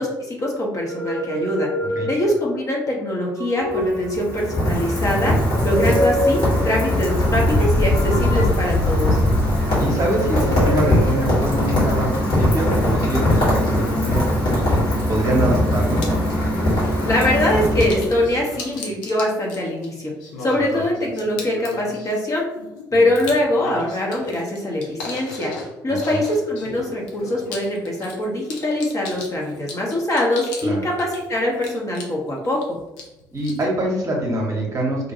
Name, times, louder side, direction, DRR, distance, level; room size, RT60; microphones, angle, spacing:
voice 1, 0.0-1.7 2.1-5.3 5.6-9.2 17.0-20.1 20.4-22.5 22.9-25.5 25.8-32.8, left 1 dB, 30° left, -2 dB, 0.7 m, -23 dB
sound 1, 0.8-2.6 3.2-4.5 5.5-6.8 7.9-9.8 10.3-11.3, left 1 dB, 80° right, 0.4 m, -27 dB
Rain, 3.6-18.4, left 1 dB, 55° left, 1.3 m, -20 dB
voice 2, 5.0-5.3 9.8-14.8 15.1-16.1 22.9-23.1 26.1-26.2 30.6-30.8 33.3-35.1, right 1 dB, 30° right, -2 dB, 0.8 m, -24 dB
sound 2, 14.3-14.4 15.1-15.4 15.8-16.2 17.4-30.7 31.0-32.6 33.0-33.7, left 3 dB, 70° left, 0.5 m, -36 dB
2.5 x 2.2 x 2.7 m, 0.97 s
figure-of-eight pair, 45°, 11 cm